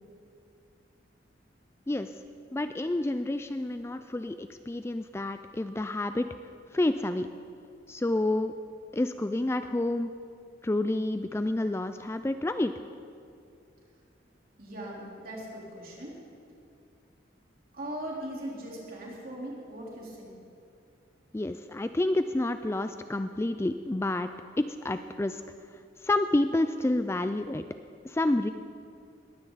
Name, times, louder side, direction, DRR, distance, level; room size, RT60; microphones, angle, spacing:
voice 1, 2.5-6.3 6.7-7.3 7.9-8.5 8.9-10.1 10.6-12.7 21.3-24.3 24.6-25.4 26.0-27.6 28.0-28.5, left 1 dB, 15° left, 9 dB, 0.3 m, -29 dB
voice 2, 14.6-16.2 17.7-20.3, right 1 dB, 50° right, -4 dB, 3.8 m, -39 dB
20.5 x 16.0 x 4.0 m, 2.5 s
head